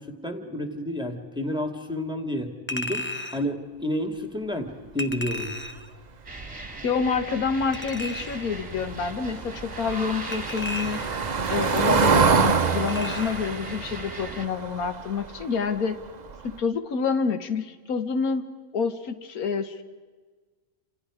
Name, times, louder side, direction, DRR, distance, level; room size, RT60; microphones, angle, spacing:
voice 1, 0.0-5.5, left 1 dB, 5° right, 4 dB, 2.1 m, -30 dB
Chink clink, 2.7-3.5 5.0-5.9 7.7-8.5 10.3-11.3 12.9-13.5 13.9-14.0, left 1 dB, 15° left, 0.5 m, -35 dB
sound 1, 6.2-14.5, right 2 dB, 20° right, 2.1 m, -39 dB
voice 2, 6.8-11.0 11.5-16.0 16.4-18.5 18.7-19.8, left 5 dB, 80° left, 9 dB, 1.7 m, -27 dB
Car passing by / Engine, 8.8-15.7 16.1-16.3 16.6-16.7, right 5 dB, 40° right, 0.7 m, -26 dB
29.0 x 26.5 x 5.0 m, 1.4 s
omnidirectional pair, 1.5 m